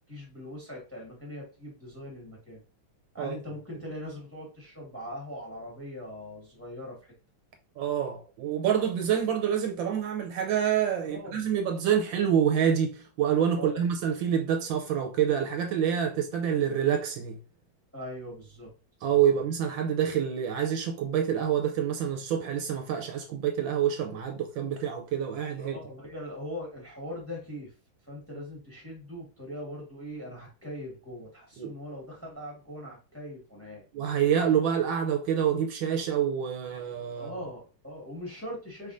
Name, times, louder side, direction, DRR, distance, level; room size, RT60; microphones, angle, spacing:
voice 1, 0.1-2.6 3.1-7.0 11.0-11.5 13.6-13.9 17.9-18.7 19.1-19.4 25.6-27.7 28.1-33.8 37.1-38.9, left 1 dB, 10° left, 1.4 m, -41 dB
voice 2, 7.8-17.4 19.0-25.8 31.6-31.7 33.9-37.3, right 8 dB, 75° right, 1.3 m, -27 dB
4.8 x 3.5 x 2.5 m
omnidirectional pair, 2.2 m